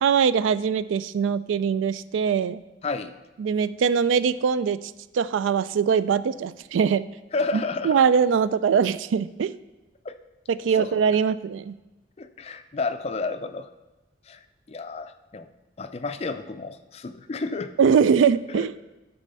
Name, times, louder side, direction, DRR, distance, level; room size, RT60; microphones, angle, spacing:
voice 1, 0.0-2.6 3.4-7.1 7.5-9.6 10.5-11.7 17.8-18.7, right 6 dB, 85° right, 16 dB, 0.3 m, -22 dB
voice 2, 7.3-8.0 10.0-10.2 10.8-11.0 12.2-13.7 14.3-14.4 14.7-15.5 15.8-17.7 18.5-18.7, left 3 dB, 35° left, 10 dB, 0.4 m, -31 dB
12.5 x 4.2 x 5.5 m, 1.1 s
head